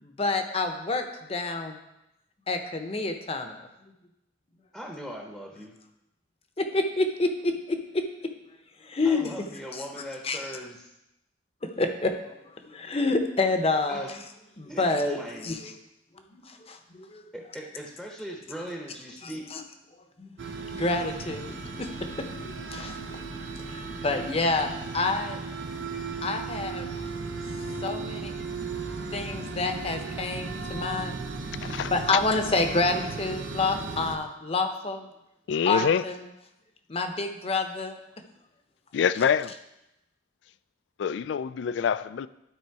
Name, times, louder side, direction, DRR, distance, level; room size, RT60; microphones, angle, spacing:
voice 1, 0.0-1.8 2.5-3.6 6.6-8.0 8.8-9.3 9.7-9.8 10.2-10.4 11.6-12.1 12.7-14.1 14.6-15.2 15.4-15.7 16.3-17.2 19.5-19.6 20.2-20.3 20.7-23.0 23.7-25.4 26.2-26.9 27.8-28.3 29.1-31.2 31.8-35.1 35.7-36.2 36.9-38.0, left 3 dB, 30° left, 6 dB, 0.8 m, -28 dB
voice 2, 4.7-5.7 9.0-10.9 13.9-14.2 14.7-15.6 17.3-19.4, equal, ahead, -1 dB, 0.8 m, -40 dB
sound 1, 20.4-34.2, right 3 dB, 85° right, 0.8 m, -36 dB
voice 3, 31.6-31.9 35.5-36.0 38.9-39.5 41.0-42.3, left 7 dB, 70° left, 17 dB, 0.3 m, -25 dB
12.0 x 4.2 x 4.7 m, 0.90 s
head